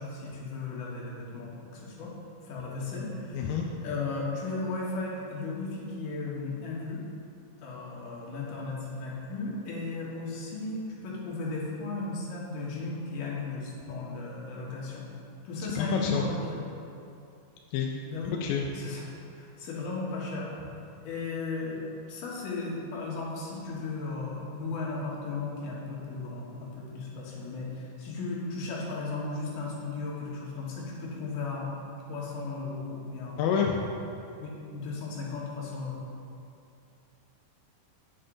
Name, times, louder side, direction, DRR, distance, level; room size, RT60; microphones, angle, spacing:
voice 1, 0.0-2.1 2.4-7.0 7.6-15.1 15.4-16.7 18.1-18.4 18.7-19.1 19.3-20.5 21.0-31.7 32.1-33.4 34.4-36.1, left 3 dB, 75° left, -5 dB, 2.9 m, -35 dB
voice 2, 3.3-3.7 15.8-16.3 17.7-18.0 18.4-18.7 33.4-33.8, left 7 dB, 90° left, 0 dB, 2.3 m, -28 dB
8.4 x 6.5 x 3.8 m, 2.6 s
omnidirectional pair, 3.9 m